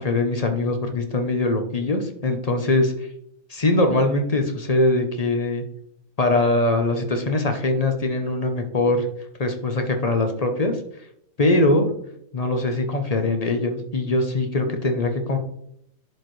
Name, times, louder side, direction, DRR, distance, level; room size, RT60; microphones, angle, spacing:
voice 1, 0.0-3.1 3.5-5.6 6.2-9.1 9.4-10.8 11.4-11.9 12.3-15.4, left 2 dB, 35° left, 5 dB, 0.6 m, -22 dB
10.5 x 4.9 x 3.1 m, 0.73 s
omnidirectional pair, 1.5 m